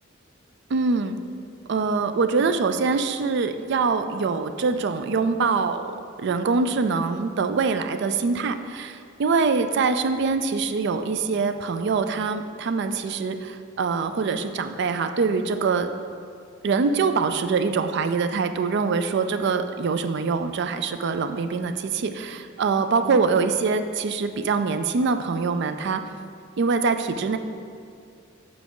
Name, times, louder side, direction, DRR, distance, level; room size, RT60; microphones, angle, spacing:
voice 1, 0.7-1.2 1.7-15.9 16.6-26.0 26.6-27.4, right 4 dB, 60° right, 9 dB, 0.4 m, -24 dB
7.1 x 4.6 x 3.8 m, 2.3 s
head